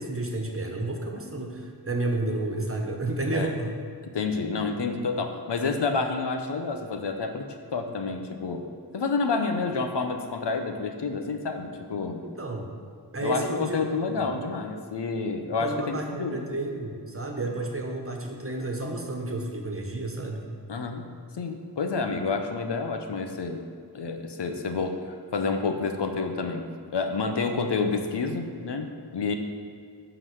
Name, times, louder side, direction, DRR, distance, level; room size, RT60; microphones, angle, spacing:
voice 1, 0.0-3.8 12.2-12.7 13.1-14.1 15.6-20.5, right 2 dB, 35° right, 1 dB, 1.3 m, -31 dB
voice 2, 4.1-7.4 7.7-8.6 8.9-12.2 13.2-16.4 20.7-21.1 21.3-23.6 23.9-26.6 26.9-29.3, left 4 dB, 85° left, 6 dB, 0.8 m, -29 dB
9.7 x 4.0 x 6.3 m, 2.3 s
wide cardioid pair, 45°, 41 cm